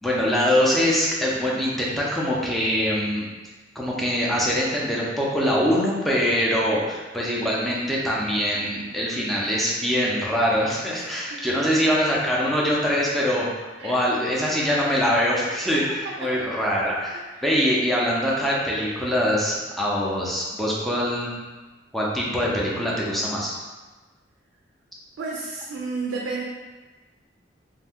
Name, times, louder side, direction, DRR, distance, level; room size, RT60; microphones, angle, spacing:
voice 1, 0.0-3.3 3.8-13.5 13.8-15.8 16.2-21.3 21.9-23.6, equal, ahead, -5 dB, 0.5 m, -23 dB
voice 2, 11.3-11.7 13.8-14.0 15.7-15.8 16.0-16.4 25.2-26.4, right 3 dB, 75° right, -2 dB, 0.4 m, -32 dB
2.5 x 2.1 x 3.5 m, 1.3 s
head